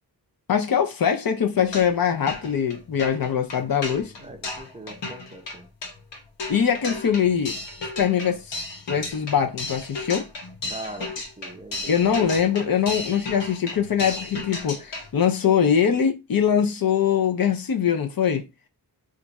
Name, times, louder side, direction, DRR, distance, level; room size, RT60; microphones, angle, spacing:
voice 1, 0.5-4.1 6.5-7.6 8.0-8.6 8.9-10.3 11.9-18.5, left 8 dB, 55° left, 0.6 m, -22 dB
sound 1, 1.5-2.0 2.3-15.1, left 2 dB, 90° left, 1.0 m, -35 dB
voice 2, 4.2-5.7 10.7-12.3, right 1 dB, 15° right, 0.5 m, -41 dB
2.5 x 2.3 x 3.9 m
wide cardioid pair, 110°, 42 cm